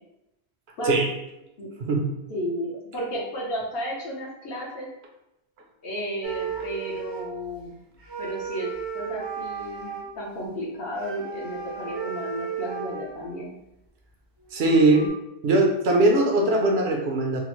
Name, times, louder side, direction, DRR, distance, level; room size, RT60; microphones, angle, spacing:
voice 1, 2.3-4.9 5.8-7.8 8.2-13.5, equal, 70° left, -3 dB, 1.1 m, -33 dB
sound 1, 6.2-7.5 8.0-10.1 11.0-13.4 14.1-14.2 14.4-15.1, right 6 dB, 35° right, 0.4 m, -34 dB
voice 2, 14.5-15.1 15.4-17.4, right 2 dB, 75° right, 1 dB, 0.9 m, -20 dB
3.6 x 2.0 x 3.0 m, 0.89 s
omnidirectional pair, 1.1 m